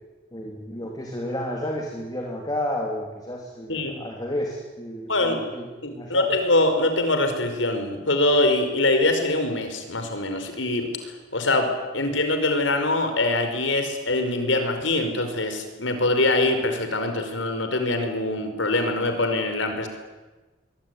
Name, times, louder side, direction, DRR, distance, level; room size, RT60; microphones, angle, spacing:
voice 1, 0.3-6.3, left 1 dB, 20° left, 0 dB, 3.6 m, -31 dB
voice 2, 5.1-5.4 5.8-10.9 11.3-19.9, left 2 dB, 90° left, 6 dB, 5.3 m, -23 dB
23.5 x 23.5 x 9.9 m, 1.2 s
head